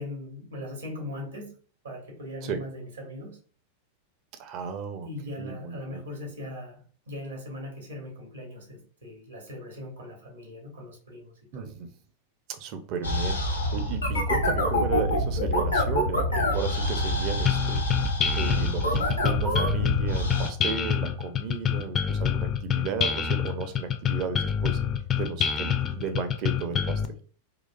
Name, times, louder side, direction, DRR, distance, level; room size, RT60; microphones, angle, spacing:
voice 1, 0.0-1.5 1.8-3.4 5.0-11.7, left 1 dB, 75° right, 1.2 m, -40 dB
voice 2, 4.4-6.0 11.5-11.9 12.5-17.8 18.4-24.8 25.2-27.0, right 6 dB, 40° right, 0.5 m, -34 dB
sound 1, 13.0-20.5, equal, 80° left, 0.9 m, -26 dB
sound 2, 17.5-27.1, left 8 dB, 25° left, 0.4 m, -27 dB
3.8 x 2.4 x 2.2 m
figure-of-eight pair, 90°, 0 cm